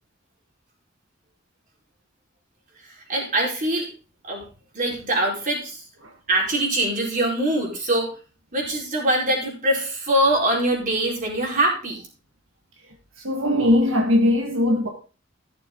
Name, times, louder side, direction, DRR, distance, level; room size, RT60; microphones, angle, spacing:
voice 1, 2.7-3.9 4.2-4.4 4.7-5.8 6.3-8.1 8.5-12.0, right 1 dB, 40° right, 4.4 m, -23 dB
voice 2, 13.2-14.9, left 1 dB, 85° right, 1.7 m, -20 dB
15.0 x 6.8 x 3.8 m
head